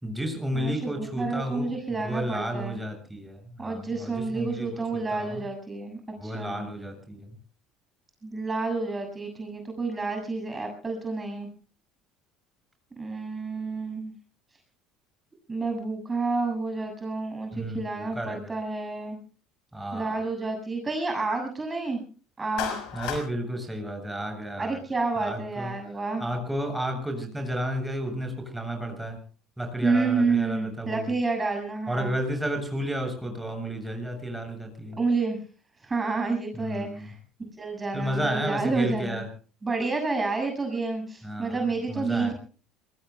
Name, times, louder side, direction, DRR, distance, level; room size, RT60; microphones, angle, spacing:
voice 1, 0.0-4.8 5.1-5.4 6.2-7.2 17.5-18.5 19.7-20.2 22.9-24.8 25.2-25.7 26.2-29.2 29.6-31.1 31.9-35.0 36.6-37.1 37.9-39.2 41.2-41.6 41.9-42.3, equal, 5° right, 3 dB, 7.7 m, -32 dB
voice 2, 0.5-2.8 3.6-6.7 8.2-11.5 13.0-14.1 15.5-19.2 19.9-22.0 22.4-22.8 24.6-26.2 29.8-32.2 34.9-35.4 35.8-37.2 37.6-39.2 39.6-42.3, right 3 dB, 20° right, 4 dB, 7.1 m, -29 dB
Clapping, 22.6-23.3, left 9 dB, 60° left, 6.3 m, -32 dB
27.5 x 22.0 x 2.3 m, 0.39 s
hypercardioid pair, 65°, 0 cm